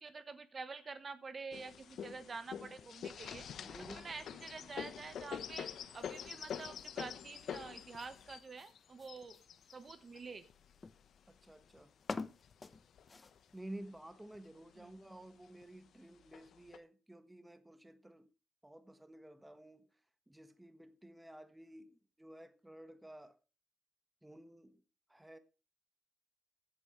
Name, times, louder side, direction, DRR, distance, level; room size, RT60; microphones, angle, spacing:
voice 1, 0.0-3.5 3.9-5.7 5.9-9.4 9.7-10.5 14.8-15.0, right 4 dB, 35° right, 1.3 m, -48 dB
sound 1, 1.5-11.8 12.4-13.4 13.8-13.9 14.1-14.8 15.6-15.7 16.3-16.8, left 8 dB, 65° left, 1.1 m, -46 dB
voice 2, 3.6-4.1 11.3-11.9 13.5-18.3 18.6-19.9 20.3-23.3 24.2-24.8 25.1-25.4, right 1 dB, 10° right, 1.4 m, -53 dB
sound 2, 6.0-13.6, left 3 dB, 25° left, 0.8 m, -51 dB
15.5 x 8.8 x 3.2 m
cardioid pair, 90°, 0 cm